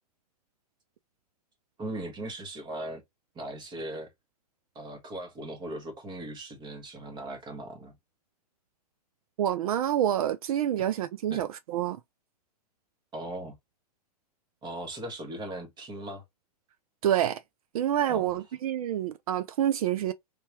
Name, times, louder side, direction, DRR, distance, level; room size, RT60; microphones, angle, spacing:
voice 1, 1.8-3.0 3.3-4.1 4.7-7.9 11.3-11.4 13.1-13.6 14.6-16.2 18.1-18.3, right 1 dB, 20° right, 1.2 m, -38 dB
voice 2, 9.4-12.0 17.0-17.4 17.7-20.1, right 11 dB, 65° right, 0.5 m, -27 dB
3.5 x 2.8 x 3.0 m
hypercardioid pair, 120°, 20 cm